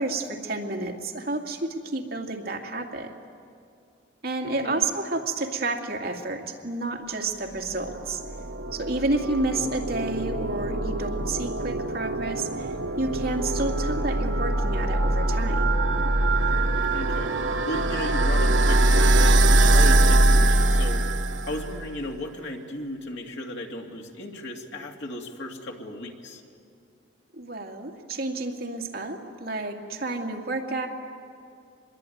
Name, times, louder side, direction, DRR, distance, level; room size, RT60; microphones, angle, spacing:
voice 1, 0.0-3.1 4.2-8.2 8.7-15.7 27.3-30.9, right 2 dB, 55° right, 1 dB, 2.3 m, -30 dB
voice 2, 4.4-4.9 16.9-21.1 21.4-26.4, left 1 dB, 70° left, 2 dB, 2.6 m, -35 dB
sound 1, 7.7-21.8, right 1 dB, 80° right, 1.0 m, -22 dB
25.5 x 21.5 x 9.3 m, 2.5 s
head